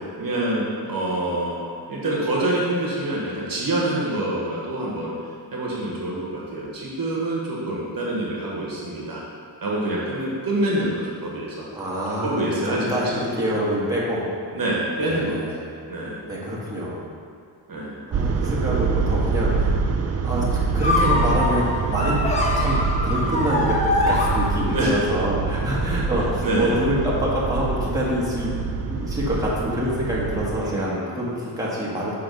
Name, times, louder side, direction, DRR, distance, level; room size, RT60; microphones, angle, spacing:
voice 1, 0.0-1.6 1.9-5.1 5.5-9.2 9.6-11.6 12.2-13.0 14.5-15.6 15.9-16.2 17.7-18.0 24.6-24.9 26.4-26.8 30.6-31.3, right 1 dB, 55° right, -4 dB, 1.3 m, -26 dB
voice 2, 11.7-14.3 15.0-15.7 16.3-17.1 18.1-19.8 20.2-28.6 28.9-32.2, equal, 10° right, -7 dB, 1.5 m, -26 dB
sound 1, 18.1-30.6, right 5 dB, 35° right, 0.5 m, -25 dB
sound 2, 20.8-25.0, left 2 dB, 15° left, 1.0 m, -24 dB
6.2 x 3.4 x 5.3 m, 2.2 s
cardioid pair, 85°, 42 cm